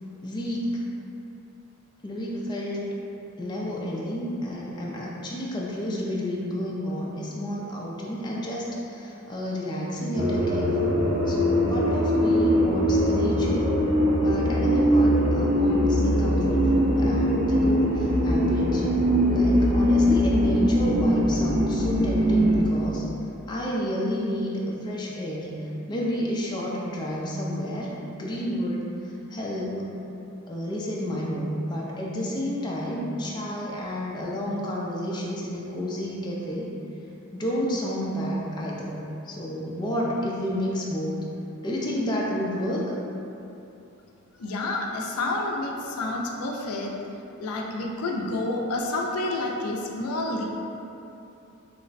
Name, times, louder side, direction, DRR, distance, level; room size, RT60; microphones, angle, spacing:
voice 1, 0.2-0.7 2.0-2.9 3.4-10.8 11.3-13.7 14.2-23.0 23.5-25.5 25.9-28.8 29.3-29.8 30.5-36.7 37.3-38.9 39.3-41.2 41.6-42.8, equal, 20° left, -4 dB, 0.4 m, -30 dB
sound 1, 10.1-22.6, equal, 30° right, 0.8 m, -22 dB
voice 2, 44.4-46.9 47.4-50.4, left 2 dB, 85° left, 1 dB, 0.4 m, -29 dB
3.2 x 2.1 x 4.0 m, 2.8 s
head